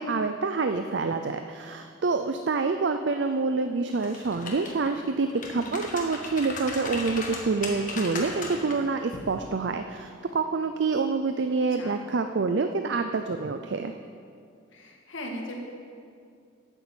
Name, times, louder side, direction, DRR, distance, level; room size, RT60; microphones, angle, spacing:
voice 1, 0.0-13.9, right 4 dB, 60° right, 7 dB, 0.5 m, -27 dB
sound 1, 3.9-4.9 5.3-8.8 9.1-9.3, left 3 dB, 40° left, 1.6 m, -36 dB
voice 2, 14.7-15.6, equal, 80° left, 0 dB, 1.9 m, -38 dB
9.3 x 9.1 x 7.4 m, 2.3 s
head